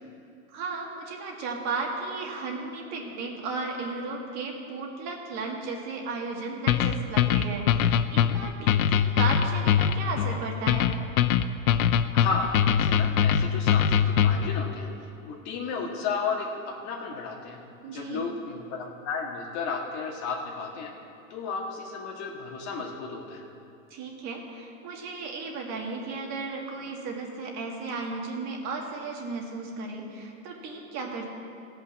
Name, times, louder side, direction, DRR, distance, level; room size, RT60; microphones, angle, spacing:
voice 1, 0.5-10.9 17.8-18.3 23.9-31.3, right 3 dB, 40° right, 0 dB, 1.9 m, -35 dB
sound 1, 6.7-14.6, left 9 dB, 75° left, 0.7 m, -22 dB
voice 2, 12.1-17.6 17.9-20.9 21.3-23.4, left 4 dB, 40° left, 0 dB, 1.9 m, -33 dB
16.0 x 5.7 x 7.1 m, 2.5 s
hypercardioid pair, 130°, 42 cm